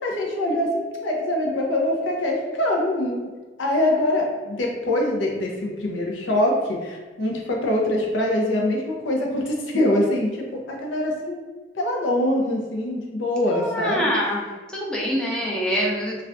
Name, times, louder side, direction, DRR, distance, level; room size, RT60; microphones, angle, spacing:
voice 1, 0.0-3.3 3.6-11.4 11.7-14.1, left 1 dB, 90° left, 0 dB, 0.6 m, -24 dB
voice 2, 13.5-14.4 14.7-16.2, equal, 5° left, -4 dB, 0.5 m, -25 dB
2.5 x 2.4 x 3.3 m, 1.3 s
head